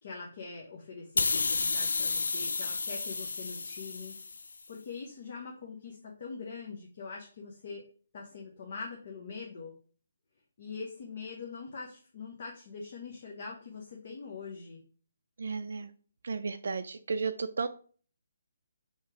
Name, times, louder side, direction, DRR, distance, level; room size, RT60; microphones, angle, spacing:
voice 1, 0.0-4.1 4.7-7.8 8.1-9.7 10.6-14.8, left 4 dB, 40° left, 0 dB, 0.7 m, -43 dB
sound 1, 1.2-4.6, left 4 dB, 85° left, 0.4 m, -31 dB
voice 2, 15.4-15.9 16.2-17.7, right 4 dB, 65° right, 7 dB, 0.3 m, -33 dB
3.2 x 2.8 x 4.6 m, 0.43 s
hypercardioid pair, 170°, 0 cm